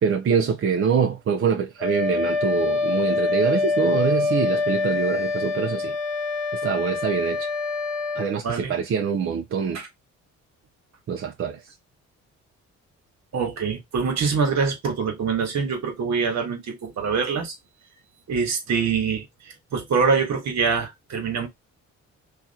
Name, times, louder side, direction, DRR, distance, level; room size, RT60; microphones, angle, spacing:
voice 1, 0.0-6.0 6.6-7.5 8.2-9.8 11.1-11.6, right 6 dB, 45° right, 0.6 m, -24 dB
Wind instrument woodwind instrument, 1.8-8.3, left 3 dB, ahead, 1.5 m, -25 dB
voice 2, 8.4-8.7 9.7-9.9 13.3-17.5 18.3-19.2 19.7-21.5, right 5 dB, 65° right, 1.5 m, -24 dB
2.9 x 2.5 x 4.1 m
cardioid pair, 90°, 30 cm